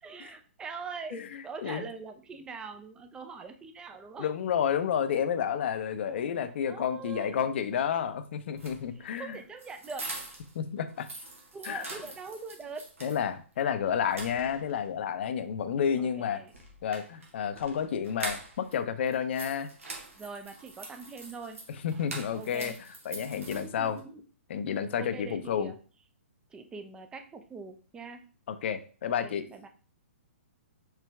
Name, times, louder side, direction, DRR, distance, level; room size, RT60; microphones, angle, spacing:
voice 1, 0.0-4.3 6.1-7.5 8.9-10.1 11.5-13.2 13.8-14.2 16.0-16.5 20.1-21.6 22.3-22.8 23.5-24.2 24.9-25.8 26.5-28.2 29.2-29.7, right 4 dB, 10° right, 6 dB, 0.5 m, -43 dB
voice 2, 4.2-9.4 10.5-11.1 11.6-11.9 13.0-16.4 16.8-19.7 21.8-22.7 23.1-24.0 24.5-25.7 28.5-29.5, left 8 dB, 55° left, 10 dB, 0.6 m, -30 dB
sound 1, 8.5-10.6 10.9-13.2 13.6-13.7 14.0-14.9 16.5-18.8 19.1-24.0, right 3 dB, 85° right, 1.5 m, -43 dB
4.7 x 3.3 x 3.4 m, 0.39 s
hypercardioid pair, 130°, 7 cm